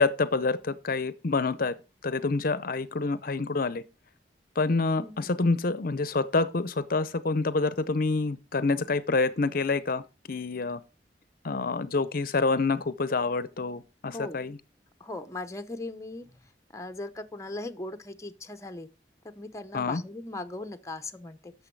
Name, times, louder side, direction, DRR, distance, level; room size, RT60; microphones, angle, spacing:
voice 1, 0.0-1.8 2.0-3.8 4.6-10.0 10.3-10.8 11.4-14.6 19.7-20.0, left 3 dB, 50° left, 0.7 m, -27 dB
voice 2, 5.0-5.4 14.1-14.4 15.0-16.3 16.7-18.9 19.4-21.5, left 2 dB, 15° left, 0.8 m, -38 dB
11.5 x 7.0 x 4.6 m
head